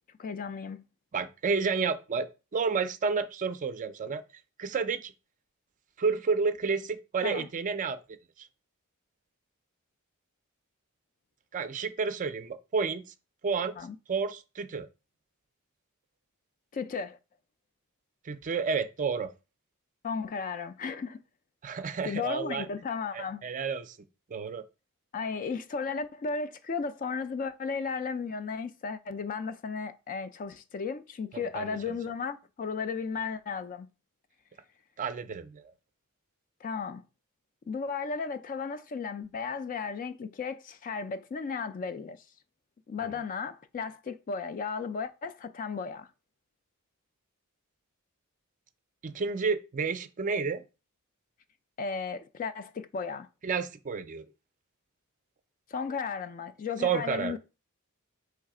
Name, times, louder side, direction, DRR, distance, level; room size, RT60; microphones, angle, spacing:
voice 1, 0.2-0.8 7.2-7.5 13.8-14.0 16.7-17.2 20.0-21.2 22.0-23.4 25.1-33.9 36.6-37.0 37.7-42.2 42.9-46.1 51.8-53.3 55.7-57.4, left 5 dB, 40° left, 0.3 m, -35 dB
voice 2, 1.1-4.2 4.6-5.1 6.0-8.0 8.4-8.5 11.5-13.0 13.4-13.7 14.1-14.9 18.2-19.3 21.6-22.7 23.1-24.0 24.3-24.6 31.3-32.0 35.0-35.7 43.0-43.1 49.0-50.6 53.4-54.2 56.8-57.4, right 5 dB, 35° right, 0.4 m, -30 dB
3.3 x 3.2 x 4.8 m
head